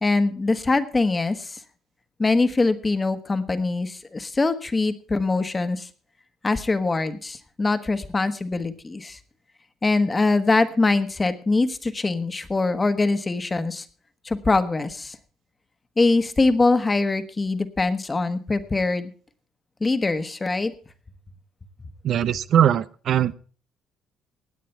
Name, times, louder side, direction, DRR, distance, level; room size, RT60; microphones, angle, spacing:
voice 1, 0.0-1.6 2.2-5.9 6.4-9.2 9.8-13.8 14.2-15.2 16.0-19.1 19.8-20.7, left 3 dB, 25° left, 10 dB, 1.3 m, -23 dB
voice 2, 22.0-23.3, right 10 dB, 60° right, 15 dB, 0.5 m, -20 dB
17.0 x 9.3 x 4.5 m, 0.41 s
supercardioid pair, 85°, 0 cm